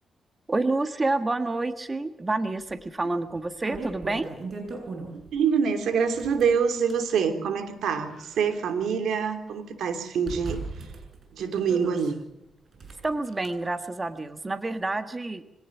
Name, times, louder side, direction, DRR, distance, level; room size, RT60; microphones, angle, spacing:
voice 1, 0.5-4.3 13.0-15.4, right 2 dB, 25° right, 9 dB, 1.6 m, -28 dB
sound 1, 2.7-2.8 3.3-5.4 6.1-7.1 7.7-9.1 9.5-9.6 10.3-12.1 12.7-13.5, right 3 dB, 50° right, 7.5 m, -38 dB
voice 2, 5.1-10.6 11.3-12.2, right 6 dB, 85° right, 9 dB, 3.0 m, -25 dB
24.0 x 18.0 x 7.3 m, 0.87 s
cardioid pair, 85°, 0 cm